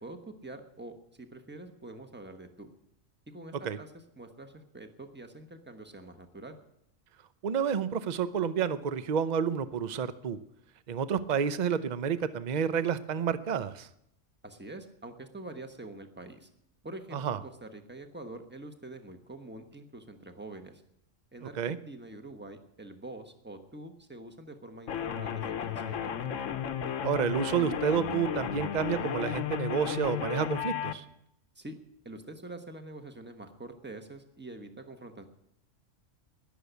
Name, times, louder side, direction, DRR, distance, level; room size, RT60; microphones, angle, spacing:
voice 1, 0.0-2.7 3.3-3.9 4.2-6.6 14.4-16.5 16.8-20.8 21.3-26.1 31.5-31.8 32.0-35.3, right 2 dB, 10° right, 6 dB, 1.2 m, -45 dB
voice 2, 7.4-10.4 10.9-13.9 17.1-17.4 21.4-21.8 27.0-31.0, right 7 dB, 45° right, 13 dB, 0.7 m, -30 dB
sound 1, 24.9-30.9, left 9 dB, 80° left, 1.2 m, -34 dB
20.5 x 6.9 x 8.2 m, 0.78 s
omnidirectional pair, 1.3 m